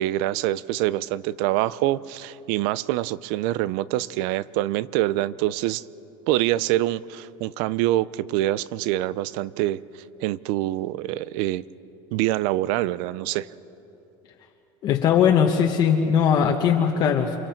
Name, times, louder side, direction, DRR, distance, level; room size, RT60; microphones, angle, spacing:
voice 1, 0.0-5.8 6.3-9.8 10.2-11.6 12.1-13.5, right 15 dB, 60° right, 19 dB, 0.5 m, -25 dB
voice 2, 14.8-17.4, left 7 dB, 35° left, 1 dB, 1.1 m, -20 dB
28.5 x 25.5 x 4.5 m, 3.0 s
cardioid pair, 160°, 12 cm